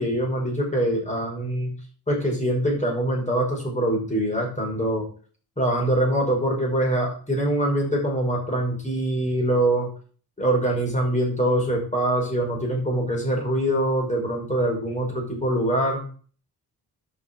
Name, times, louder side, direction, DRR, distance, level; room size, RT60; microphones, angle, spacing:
voice 1, 0.0-1.7 2.1-5.1 5.6-9.9 10.4-16.0, right 1 dB, 20° left, -1 dB, 5.4 m, -24 dB
11.5 x 6.3 x 5.4 m, 0.41 s
wide cardioid pair, 135°, 38 cm